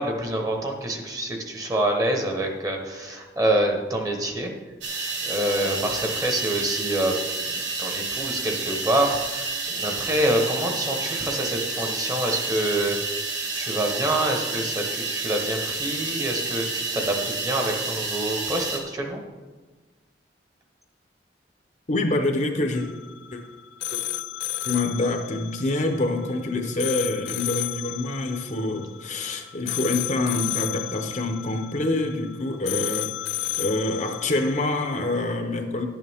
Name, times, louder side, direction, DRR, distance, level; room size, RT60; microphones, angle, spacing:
voice 1, 0.0-4.5 5.2-7.1 7.5-13.0 13.6-19.2, right 1 dB, 20° right, 2 dB, 1.1 m, -26 dB
sound 1, 4.8-18.8, right 3 dB, 90° right, 1.6 m, -30 dB
voice 2, 21.9-22.9 23.3-23.4 23.9-24.0 24.6-33.1 33.6-35.9, left 2 dB, 40° left, 4 dB, 0.9 m, -26 dB
sound 2, 22.7-35.2, left 14 dB, 65° left, 0.3 m, -33 dB
11.5 x 9.2 x 3.6 m, 1.3 s
head